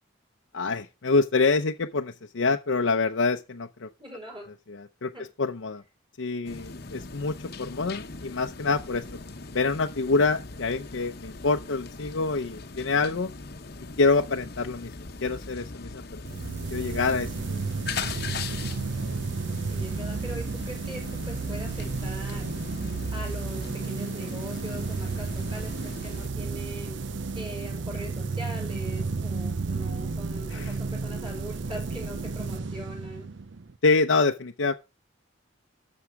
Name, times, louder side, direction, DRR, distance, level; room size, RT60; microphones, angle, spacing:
voice 1, 0.5-3.9 5.0-5.1 5.4-5.8 6.2-9.0 9.5-13.3 14.0-14.9 15.2-16.2 16.7-17.7 30.5-30.7 33.8-34.7, left 3 dB, 80° left, 0.7 m, -26 dB
voice 2, 4.0-4.5 5.1-5.3 19.7-22.5 23.1-27.0 27.3-33.3, right 1 dB, 25° right, 6.0 m, -41 dB
sound 1, 6.4-26.3, left 4 dB, 50° left, 0.9 m, -40 dB
sound 2, 16.2-33.8, right 4 dB, 65° right, 0.7 m, -32 dB
13.0 x 6.3 x 4.8 m
head